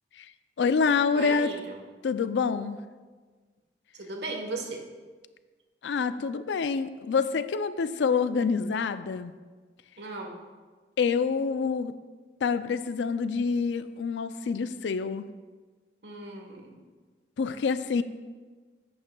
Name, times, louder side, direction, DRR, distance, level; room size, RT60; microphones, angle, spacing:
voice 1, 0.6-1.5 2.0-2.8 5.8-9.3 11.0-11.9 12.4-15.3 17.4-18.0, left 5 dB, 90° left, 12 dB, 0.4 m, -27 dB
voice 2, 1.1-1.8 3.9-4.8 10.0-10.4 16.0-16.8, right 3 dB, 80° right, 2 dB, 1.2 m, -37 dB
11.0 x 8.6 x 2.3 m, 1.4 s
head